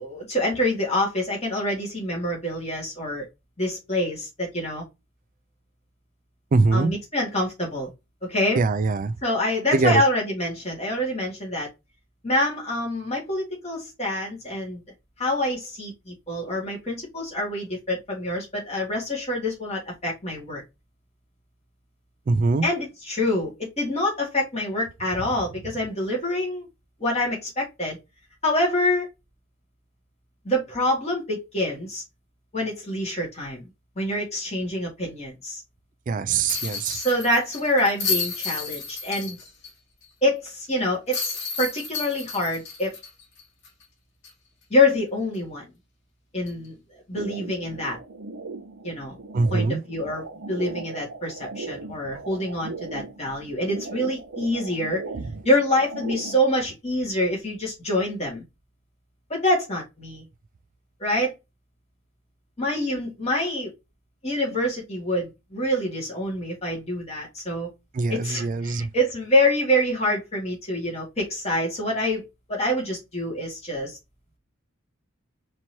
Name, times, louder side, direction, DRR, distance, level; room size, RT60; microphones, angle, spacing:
voice 1, 0.0-3.3 3.6-4.8 6.7-7.9 8.3-8.6 9.2-11.7 12.2-14.8 15.2-20.6 22.6-26.7 27.0-28.0 28.4-29.1 30.4-32.0 32.5-33.7 34.0-35.6 36.9-39.4 40.2-43.0 44.7-45.6 46.3-46.7 47.1-48.0 48.8-49.2 49.5-55.0 55.4-58.4 59.3-60.2 61.0-61.3 62.6-63.7 64.2-67.7 68.1-74.0, left 1 dB, 30° left, 2.0 m, -26 dB
voice 2, 6.5-6.9 8.6-9.1 9.7-10.0 22.3-22.7 36.1-37.0 49.3-49.8 55.2-55.3 67.9-68.9, right 3 dB, 40° right, 0.3 m, -22 dB
sound 1, 36.5-39.7 40.0-40.1 41.1-43.8 44.2-44.3 46.5-46.7, left 5 dB, 60° left, 1.8 m, -31 dB
sound 2, 47.1-56.6, right 3 dB, 75° right, 0.7 m, -38 dB
4.4 x 3.0 x 2.7 m
head